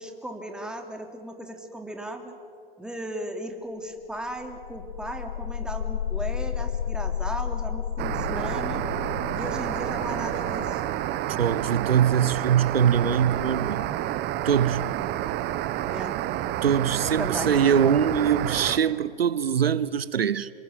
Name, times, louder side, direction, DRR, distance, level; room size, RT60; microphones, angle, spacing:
voice 1, 0.0-2.3 2.8-8.8 9.3-10.8 15.9-16.1 17.2-17.5, right 1 dB, 5° right, 3.4 m, -36 dB
sound 1, 4.1-14.1, left 9 dB, 80° left, 1.1 m, -34 dB
sound 2, 8.0-18.8, right 13 dB, 35° right, 1.3 m, -29 dB
voice 2, 11.4-13.9 14.4-15.0 16.6-20.5, right 8 dB, 85° right, 1.0 m, -23 dB
27.0 x 23.0 x 9.1 m
hypercardioid pair, 110°, 29 cm